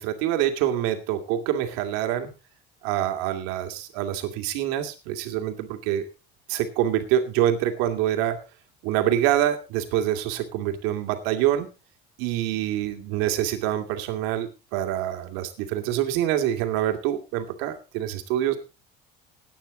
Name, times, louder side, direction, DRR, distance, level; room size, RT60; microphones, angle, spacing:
voice 1, 0.0-2.3 2.8-6.0 6.5-8.4 8.8-11.7 12.2-18.6, right 12 dB, 85° right, 6 dB, 2.4 m, -26 dB
17.0 x 9.5 x 3.8 m, 0.30 s
cardioid pair, 150°, 21 cm